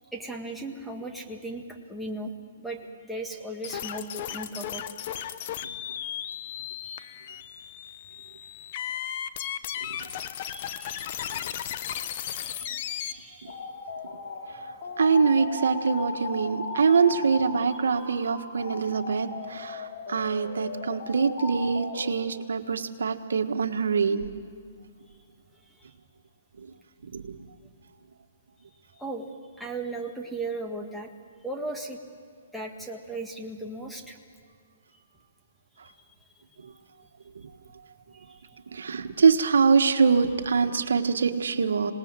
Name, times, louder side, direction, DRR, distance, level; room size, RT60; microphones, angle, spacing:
voice 1, 0.1-1.6 1.9-2.3 2.6-4.8 6.8-7.1 10.4-11.2 12.4-13.7 29.0-29.3 29.6-31.1 31.4-32.0 32.5-34.2, right 2 dB, ahead, 2 dB, 1.7 m, -37 dB
sound 1, 3.6-13.1, left 10 dB, 45° left, 0.9 m, -35 dB
sound 2, 13.5-22.1, left 3 dB, 65° left, 4.0 m, -37 dB
voice 2, 15.0-24.3 26.6-26.7 27.1-27.4 36.6-36.7 38.7-41.9, right 5 dB, 85° right, 7 dB, 1.5 m, -24 dB
26.5 x 19.0 x 7.5 m, 2.3 s
hypercardioid pair, 155°, 0 cm